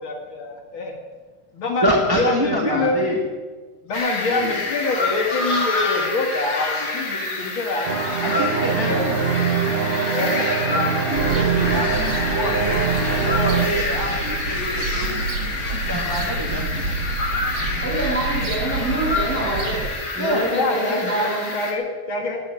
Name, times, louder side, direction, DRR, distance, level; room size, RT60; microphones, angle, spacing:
voice 1, 0.0-0.9 1.5-3.0 3.8-8.0 8.7-9.4 10.1-10.5 13.8-13.9 20.5-22.4, left 3 dB, 70° left, 2 dB, 2.7 m, -25 dB
voice 2, 1.8-3.2 4.3-4.6 8.2-9.2 10.7-12.8 13.2-15.2 15.7-16.9 20.2-20.5, equal, 10° right, -1 dB, 1.6 m, -26 dB
sound 1, 3.9-21.7, left 3 dB, 50° left, 3.0 m, -27 dB
sound 2, 7.8-13.7, right 6 dB, 40° right, 0.8 m, -23 dB
sound 3, 11.1-19.9, right 3 dB, 70° right, 2.5 m, -29 dB
voice 3, 17.8-19.8 20.1-21.5, right 1 dB, 5° left, -4 dB, 6.2 m, -25 dB
18.5 x 8.3 x 9.2 m, 1.4 s
omnidirectional pair, 2.4 m